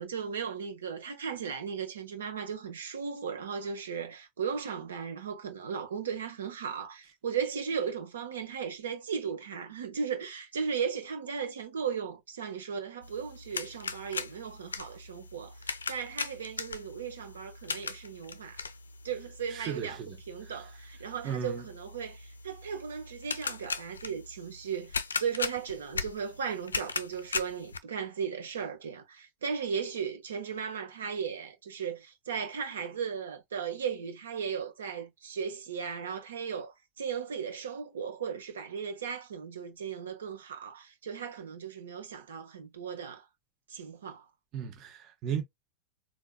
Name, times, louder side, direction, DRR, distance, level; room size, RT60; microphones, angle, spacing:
voice 1, 0.0-18.6 19.0-20.0 20.3-43.2 43.7-44.3, right 6 dB, 65° right, 1.1 m, -36 dB
sound 1, 13.0-27.8, left 4 dB, 75° left, 0.5 m, -39 dB
voice 2, 19.5-20.6 21.2-21.6 44.5-45.4, right 8 dB, 35° right, 1.0 m, -36 dB
4.5 x 2.9 x 2.3 m
figure-of-eight pair, 90°, 0 cm